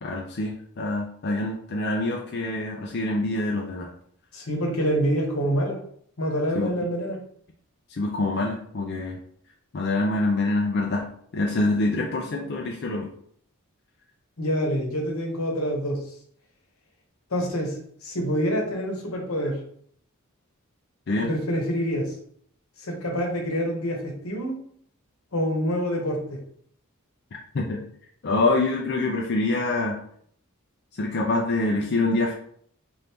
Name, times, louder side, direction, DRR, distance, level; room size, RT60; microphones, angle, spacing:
voice 1, 0.0-3.9 6.5-6.7 7.9-9.2 9.7-11.1 11.3-13.1 21.1-21.3 27.5-27.8 28.2-30.0 31.0-32.3, left 2 dB, 50° left, -1 dB, 0.5 m, -25 dB
voice 2, 4.3-5.8 6.2-7.2 14.4-16.0 17.3-19.6 21.2-22.1 22.8-24.6 25.3-26.4, equal, 80° left, 1 dB, 1.1 m, -26 dB
4.2 x 2.6 x 3.5 m, 0.64 s
head